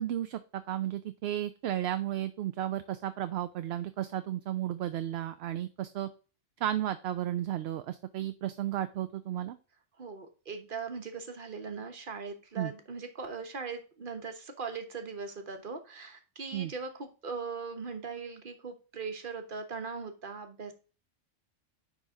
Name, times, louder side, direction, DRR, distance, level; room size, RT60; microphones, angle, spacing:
voice 1, 0.0-6.1 6.6-9.6 12.6-12.7 16.5-16.7, right 12 dB, 65° right, 11 dB, 0.8 m, -33 dB
voice 2, 10.0-20.7, right 5 dB, 45° right, 6 dB, 1.4 m, -40 dB
9.8 x 4.0 x 3.8 m, 0.34 s
omnidirectional pair, 1.2 m